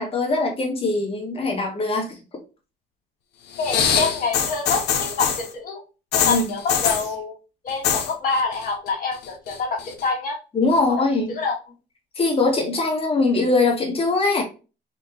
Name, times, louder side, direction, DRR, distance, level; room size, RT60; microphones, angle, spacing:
voice 1, 0.0-2.2 6.2-6.5 10.5-11.3 12.1-14.4, left 3 dB, 35° left, 1 dB, 1.7 m, -21 dB
sound 1, 3.5-5.5 6.1-7.1 7.7-8.1 8.4-8.9 9.2-10.0 10.8-10.9, left 7 dB, 80° left, 0.9 m, -23 dB
voice 2, 3.6-5.8 6.1-7.4 7.6-10.4 11.0-11.6, left 4 dB, 55° left, 0 dB, 2.1 m, -26 dB
4.4 x 2.7 x 4.3 m, 0.32 s
cardioid pair, 110°, 17 cm